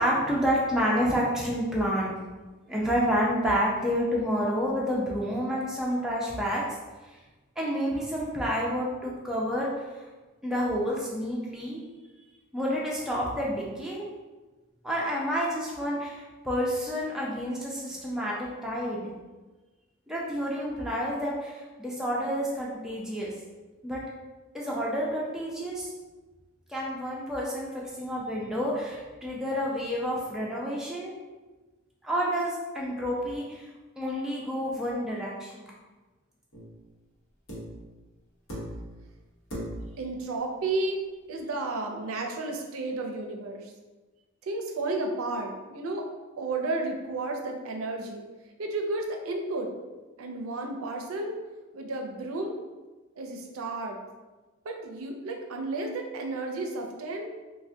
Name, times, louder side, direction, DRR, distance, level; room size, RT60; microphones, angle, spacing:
voice 1, 0.0-2.2 2.7-6.6 7.6-9.7 10.4-11.8 12.5-14.1 14.8-19.1 20.1-23.3 23.8-24.0 24.5-25.9 26.7-31.2 32.0-33.7 34.0-35.7, equal, 5° right, -5 dB, 0.4 m, -29 dB
sound 1, 36.5-36.8 37.5-37.9 38.5-39.0 39.5-40.0 41.4-41.5, equal, 80° left, 0.9 m, -38 dB
voice 2, 40.0-41.0 41.3-43.7 44.4-46.1 46.4-48.2 48.6-49.7 50.2-51.4 51.7-52.6 53.2-54.0 54.6-57.3, right 2 dB, 90° right, 2 dB, 0.4 m, -32 dB
3.3 x 2.1 x 2.6 m, 1.2 s
head